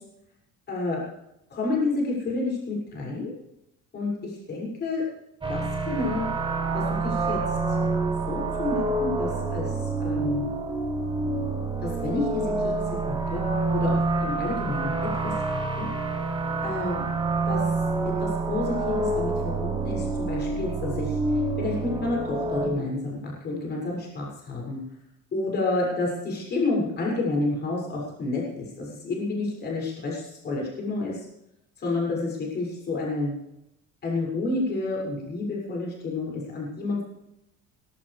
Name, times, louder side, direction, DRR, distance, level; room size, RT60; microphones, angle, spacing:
voice 1, 0.7-1.0 1.5-3.3 3.9-5.0 5.5-6.3 6.7-7.8 8.3-10.5 11.8-12.7 13.1-13.4 13.7-15.3 15.8-15.9 16.6-17.0 17.5-17.6 18.0-19.3 19.6-21.2 21.6-24.8 25.3-31.2 31.8-33.3 34.0-37.0, left 2 dB, 35° left, -3 dB, 6.8 m, -29 dB
sound 1, 5.4-22.7, right 3 dB, 15° right, 6.0 m, -27 dB
19.0 x 18.0 x 3.5 m, 0.83 s
cardioid pair, 150°, 29 cm